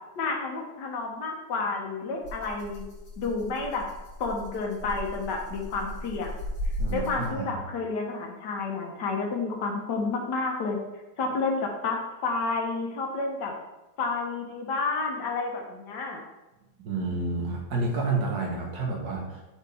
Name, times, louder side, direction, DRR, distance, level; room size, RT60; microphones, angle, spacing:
voice 1, 0.2-2.9 3.2-3.9 4.2-6.3 6.9-10.8 11.2-13.5 14.0-16.2, left 3 dB, 75° left, 1 dB, 1.7 m, -30 dB
Rattle (instrument), 2.2-7.6, equal, 50° left, 1.8 m, -36 dB
voice 2, 6.8-7.5 16.8-19.4, right 3 dB, 60° right, 0 dB, 1.8 m, -29 dB
7.6 x 4.9 x 3.4 m, 1.0 s
omnidirectional pair, 1.9 m